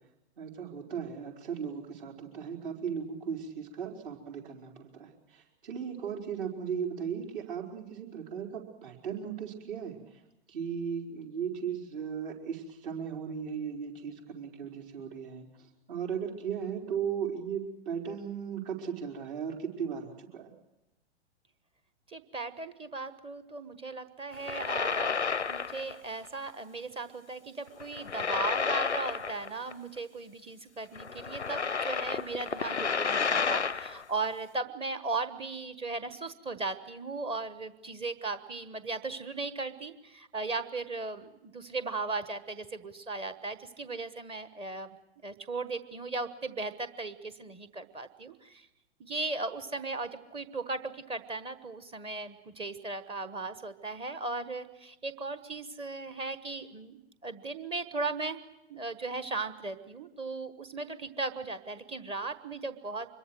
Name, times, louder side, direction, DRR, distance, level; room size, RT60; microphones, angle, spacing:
voice 1, 0.4-10.2 10.5-20.5, right 7 dB, 50° right, 2 dB, 4.9 m, -37 dB
voice 2, 22.1-25.2 25.5-44.9 45.2-48.7 49.0-58.4 58.7-63.1, right 3 dB, 15° right, 12 dB, 1.2 m, -37 dB
sound 1, 24.3-26.0 26.3-26.5 27.8-29.7 30.0-30.1 31.0-34.0, left 5 dB, 90° left, 0.7 m, -31 dB
25.5 x 22.0 x 6.3 m, 0.92 s
figure-of-eight pair, 110°, 33 cm